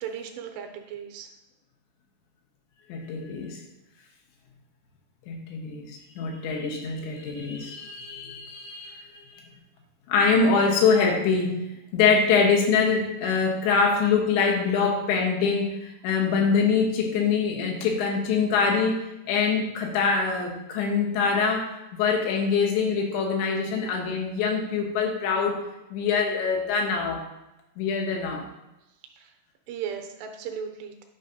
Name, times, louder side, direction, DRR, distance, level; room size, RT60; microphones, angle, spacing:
voice 1, 0.0-1.3 29.2-29.3 29.7-31.0, right 7 dB, 80° right, 5 dB, 2.6 m, -36 dB
voice 2, 2.9-3.6 5.3-9.4 10.1-11.6 11.9-19.0 19.3-25.6 25.9-27.3 27.8-28.5, left 5 dB, 85° left, 1 dB, 3.4 m, -24 dB
9.7 x 5.5 x 2.6 m, 0.94 s
omnidirectional pair, 5.1 m